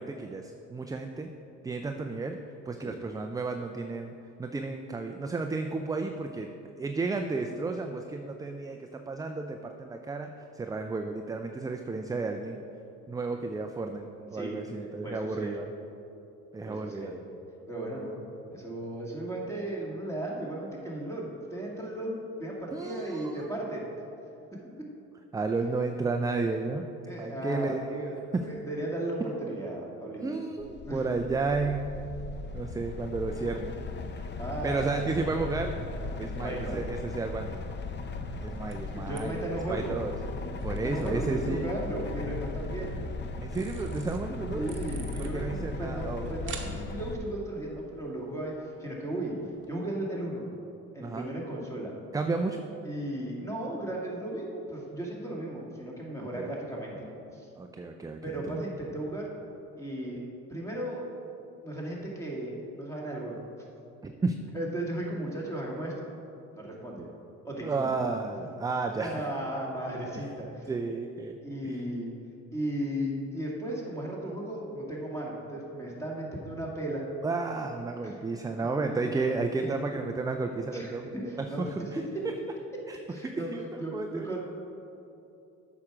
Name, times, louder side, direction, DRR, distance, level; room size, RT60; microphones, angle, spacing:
voice 1, 0.0-1.3 1.6-2.4 2.7-4.1 4.4-6.5 6.8-12.6 13.1-15.7 16.5-17.1 22.7-23.5 25.3-26.9 27.2-28.4 30.2-31.9 32.5-33.7 34.1-34.3 34.6-35.8 36.2-37.7 38.4-39.4 39.7-40.1 40.6-41.7 43.4-44.8 45.2-46.5 51.0-51.3 52.1-52.6 56.4-56.5 57.6-58.6 64.0-64.4 67.6-69.2 70.7-71.8 77.2-81.7 82.9-83.0 83.2-84.4, right 3 dB, 10° right, 5 dB, 0.4 m, -32 dB
voice 2, 14.3-15.6 16.6-17.1 17.7-18.2 18.5-23.8 27.1-28.1 28.4-30.4 30.8-31.0 34.4-34.8 36.3-36.8 38.9-40.0 40.7-43.0 44.5-49.4 49.7-50.5 50.9-51.9 52.8-57.1 57.3-57.5 58.2-59.3 59.8-60.2 60.5-61.1 61.6-63.4 64.5-66.1 66.5-67.1 67.4-68.0 69.0-70.7 71.4-72.1 72.5-77.1 78.0-78.2 79.0-79.3 79.6-79.8 80.7-81.7 83.1-83.5 83.8-84.4, right 1 dB, 10° left, -3 dB, 2.2 m, -35 dB
sound 1, 30.6-47.2, left 3 dB, 35° left, 0.6 m, -37 dB
sound 2, 35.6-49.7, right 6 dB, 35° right, 1.0 m, -52 dB
8.5 x 6.1 x 5.0 m, 2.8 s
cardioid pair, 95°, 33 cm